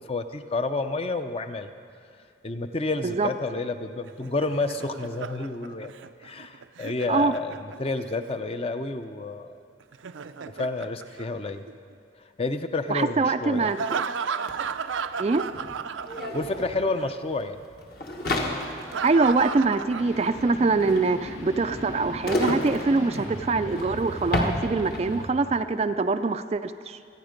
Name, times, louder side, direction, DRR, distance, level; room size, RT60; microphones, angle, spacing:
voice 1, 0.0-1.7 2.4-5.9 6.2-9.6 10.5-11.6 12.2-13.7 16.1-17.7, left 3 dB, 30° left, 8 dB, 0.6 m, -30 dB
Laughter, 4.1-8.1 9.8-11.9 13.6-16.7 17.0-17.1 18.6-20.7, right 6 dB, 90° right, 0.5 m, -34 dB
voice 2, 12.9-14.0 15.2-15.4 19.0-27.0, right 3 dB, 35° right, 10 dB, 0.3 m, -24 dB
sound 1, 14.5-14.6 14.8-25.2, left 1 dB, 55° left, 1.6 m, -32 dB
sound 2, 20.0-25.3, equal, 85° left, 2.6 m, -38 dB
26.0 x 9.7 x 5.1 m, 2.4 s
head